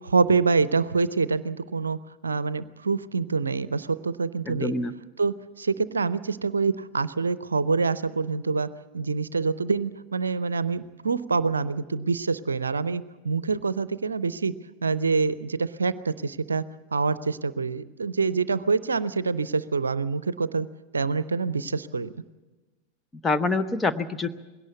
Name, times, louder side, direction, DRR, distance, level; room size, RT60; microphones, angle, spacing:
voice 1, 0.0-2.0 2.2-4.7 5.2-8.7 8.9-14.5 14.8-16.6 16.9-20.7 20.9-22.1, right 4 dB, 75° right, 17 dB, 0.6 m, -26 dB
voice 2, 4.4-4.9 23.2-24.3, left 3 dB, 15° left, 8 dB, 0.9 m, -25 dB
20.5 x 17.5 x 8.2 m, 1.2 s
figure-of-eight pair, 90°, 0 cm